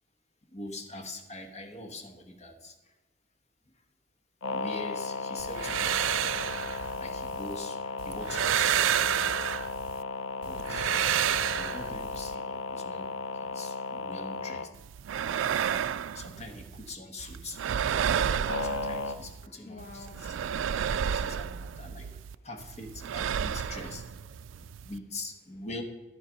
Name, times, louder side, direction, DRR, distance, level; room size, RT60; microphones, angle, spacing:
voice 1, 0.5-2.9 4.5-6.7 6.9-9.6 10.4-10.9 11.5-13.1 13.4-14.7 15.2-15.4 16.1-17.6 18.6-20.4 21.0-22.2 22.4-24.0 24.8-25.8, left 2 dB, 35° left, 3 dB, 1.2 m, -43 dB
sound 1, 4.4-14.7 18.5-19.2, left 3 dB, 90° left, 0.6 m, -35 dB
sound 2, 5.4-7.6 8.0-10.0 10.4-12.3 14.7-16.9 17.2-19.5 19.8-22.3 22.6-25.0, right 9 dB, 80° right, 0.3 m, -31 dB
voice 2, 19.4-21.1 21.6-22.2 23.5-24.0 24.2-24.9, left 3 dB, 50° left, 2 dB, 0.8 m, -53 dB
11.0 x 7.4 x 5.2 m, 1.1 s
head